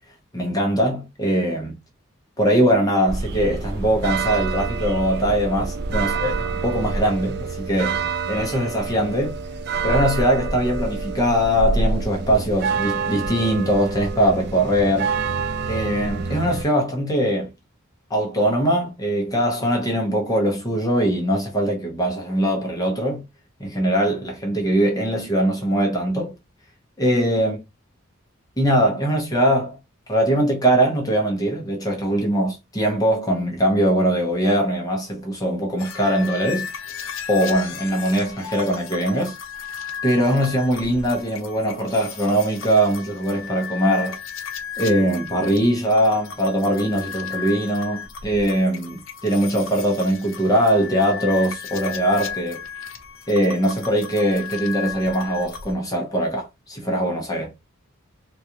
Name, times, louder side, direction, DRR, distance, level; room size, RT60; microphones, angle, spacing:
voice 1, 0.3-1.7 2.4-9.4 9.8-15.1 15.7-17.5 18.1-23.2 23.6-26.3 27.0-27.6 28.6-29.8 30.1-39.4 40.0-44.2 44.8-52.6 53.3-57.5, equal, 15° left, 0.9 m, -21 dB
sound 1, 3.1-16.6, right 4 dB, 50° right, 0.4 m, -27 dB
sound 2, 35.8-55.7, left 7 dB, 70° left, 0.7 m, -35 dB
3.9 x 2.4 x 2.9 m
head